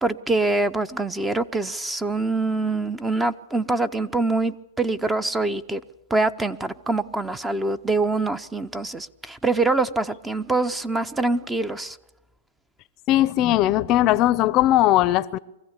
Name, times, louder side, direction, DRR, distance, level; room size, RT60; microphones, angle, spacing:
voice 1, 0.0-5.8 6.1-12.0, right 3 dB, 10° right, 0.6 m, -24 dB
voice 2, 13.1-15.4, left 14 dB, 35° left, 0.7 m, -19 dB
24.0 x 15.5 x 8.1 m
hypercardioid pair, 140°, 0 cm